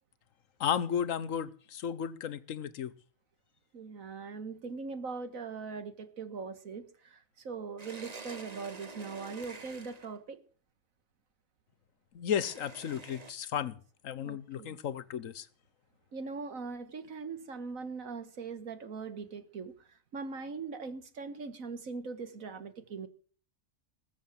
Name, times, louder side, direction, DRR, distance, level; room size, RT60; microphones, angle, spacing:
voice 1, 0.6-2.9 12.1-13.8 14.0-15.5, left 8 dB, 80° left, 1.3 m, -34 dB
voice 2, 3.7-10.4 14.2-14.8 16.1-19.7 20.1-23.1, right 4 dB, 85° right, 2.0 m, -41 dB
sound 1, 7.8-10.2 12.3-13.3, right 3 dB, 30° right, 1.3 m, -47 dB
20.0 x 7.4 x 7.5 m
omnidirectional pair, 1.4 m